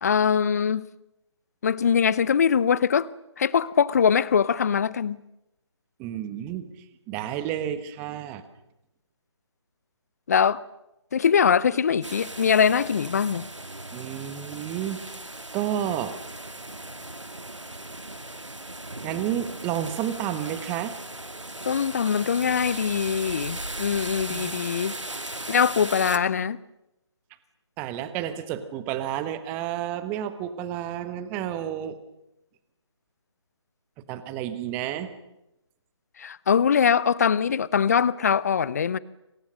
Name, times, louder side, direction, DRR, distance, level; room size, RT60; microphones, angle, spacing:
voice 1, 0.0-0.9 1.6-3.1 3.4-5.2 10.3-10.6 11.1-13.4 21.7-25.0 25.5-26.6 36.2-39.0, left 7 dB, 35° left, 0.8 m, -22 dB
voice 2, 6.0-6.7 7.1-8.4 13.9-15.0 15.5-16.2 19.0-21.0 24.3-24.6 27.8-32.0 34.1-35.1, right 11 dB, 10° right, 1.3 m, -31 dB
sound 1, 12.0-26.2, right 2 dB, 85° right, 2.2 m, -37 dB
26.5 x 26.5 x 6.5 m
figure-of-eight pair, 150°, 15 cm